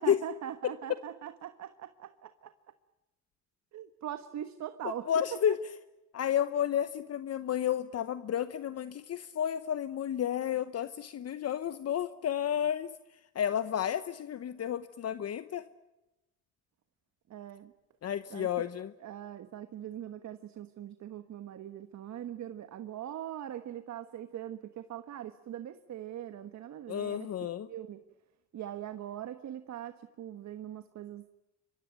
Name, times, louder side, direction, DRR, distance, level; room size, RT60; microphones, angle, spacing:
voice 1, 0.0-2.5 3.7-5.6 17.3-17.7 18.3-18.7 19.0-27.3 27.7-28.0 28.5-31.2, right 11 dB, 65° right, 10 dB, 1.4 m, -41 dB
voice 2, 0.6-1.0 4.8-5.6 6.1-12.9 13.3-15.6 18.0-18.9 26.9-27.7, left 9 dB, 55° left, 13 dB, 1.0 m, -31 dB
26.5 x 23.5 x 9.3 m, 0.99 s
cardioid pair, 90°, 30 cm